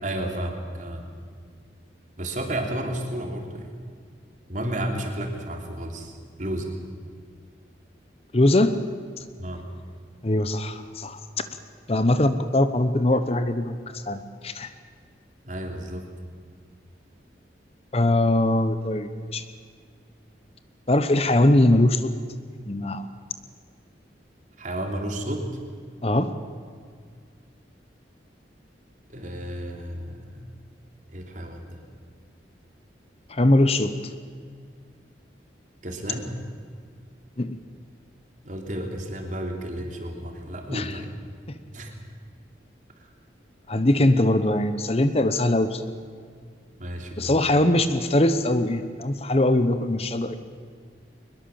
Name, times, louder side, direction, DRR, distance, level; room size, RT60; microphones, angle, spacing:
voice 1, 0.0-1.1 2.2-3.8 4.5-6.8 9.4-9.7 15.4-16.1 24.6-25.5 29.1-30.4 31.1-31.8 35.8-36.3 38.4-41.1 41.7-41.9 43.0-43.1 46.8-47.4, right 1 dB, 45° right, 3 dB, 3.2 m, -32 dB
voice 2, 8.3-8.8 10.2-11.2 11.9-14.7 17.9-19.4 20.9-22.2 22.7-23.0 26.0-26.3 33.3-33.9 37.4-37.6 40.7-40.9 41.5-41.6 43.7-45.8 47.2-50.4, left 1 dB, 35° left, 11 dB, 0.9 m, -21 dB
22.5 x 21.0 x 7.3 m, 2.1 s
head